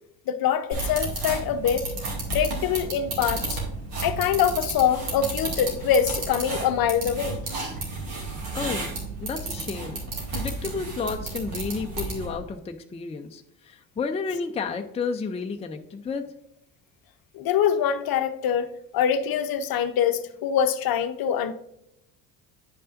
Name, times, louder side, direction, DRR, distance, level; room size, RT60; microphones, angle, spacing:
voice 1, 0.3-1.9 2.3-3.6 4.0-7.4 17.3-18.7 18.9-21.5, left 8 dB, 45° left, 0.7 m, -24 dB
sound 1, 0.7-12.4, right 2 dB, 80° right, 2.5 m, -32 dB
voice 2, 8.5-8.9 9.2-10.0 10.3-16.3, left 5 dB, 15° left, 0.5 m, -31 dB
10.0 x 5.4 x 2.6 m
hypercardioid pair, 70°, 48 cm